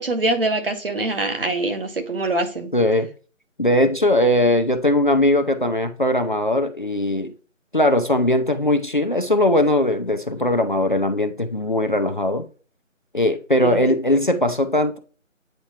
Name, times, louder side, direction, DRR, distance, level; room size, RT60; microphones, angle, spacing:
voice 1, 0.0-2.7 13.6-13.9, right 2 dB, 45° right, 1.2 m, -24 dB
voice 2, 2.7-3.1 3.6-7.3 7.7-12.5 13.1-15.0, left 1 dB, 40° left, 0.5 m, -20 dB
8.9 x 4.4 x 2.9 m
figure-of-eight pair, 165°, 39 cm